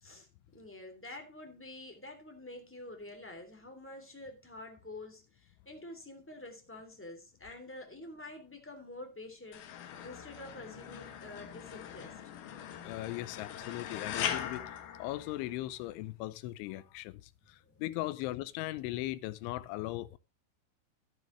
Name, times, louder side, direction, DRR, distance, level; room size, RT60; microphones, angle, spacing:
voice 1, 0.0-12.2 17.6-17.8, left 2 dB, 5° left, 1.8 m, -48 dB
sound 1, 9.5-15.8, left 9 dB, 65° left, 2.9 m, -41 dB
voice 2, 12.8-14.7 15.0-17.2 17.5-20.2, left 17 dB, 85° left, 3.2 m, -38 dB
12.5 x 11.5 x 3.3 m
omnidirectional pair, 5.4 m